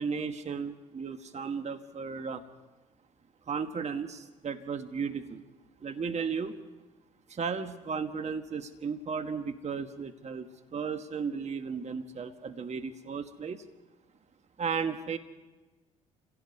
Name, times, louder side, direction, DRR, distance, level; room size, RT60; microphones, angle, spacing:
voice 1, 0.0-2.4 3.5-5.4 5.8-6.5 7.3-13.6 14.6-15.2, right 5 dB, 40° right, 8 dB, 1.4 m, -35 dB
29.0 x 17.0 x 5.4 m, 1.2 s
hypercardioid pair, 55°, 18 cm